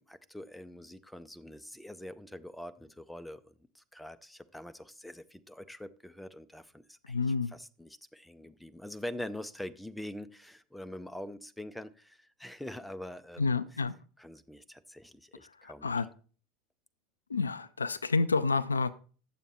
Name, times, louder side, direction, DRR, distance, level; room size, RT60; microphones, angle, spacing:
voice 1, 0.0-7.2 7.5-13.8 14.2-15.9, left 1 dB, 5° left, 11 dB, 0.5 m, -44 dB
voice 2, 7.1-7.5 13.4-13.9 15.6-16.1 17.3-18.9, left 4 dB, 80° left, 14 dB, 0.3 m, -29 dB
9.0 x 7.0 x 4.3 m, 0.40 s
figure-of-eight pair, 75°, 0 cm